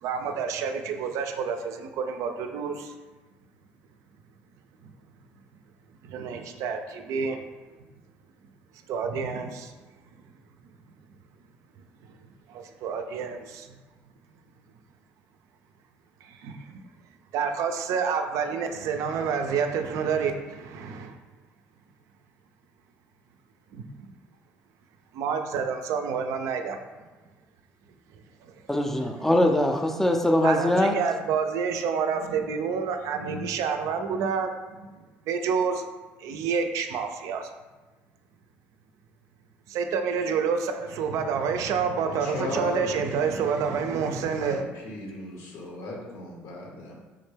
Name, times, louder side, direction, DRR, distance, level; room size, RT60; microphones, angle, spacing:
voice 1, 0.0-2.9 6.0-7.4 8.9-9.7 12.5-13.7 16.2-16.8 17.3-21.2 23.7-24.1 25.1-26.8 28.4-28.5 30.4-35.9 36.2-37.5 39.7-44.7, right 6 dB, 70° right, 5 dB, 0.3 m, -28 dB
voice 2, 28.7-30.9, left 1 dB, 5° left, 4 dB, 0.4 m, -22 dB
voice 3, 42.1-43.0 44.4-46.9, left 2 dB, 75° left, -1 dB, 0.8 m, -36 dB
3.6 x 2.1 x 3.2 m, 1.2 s
supercardioid pair, 75°, 6 cm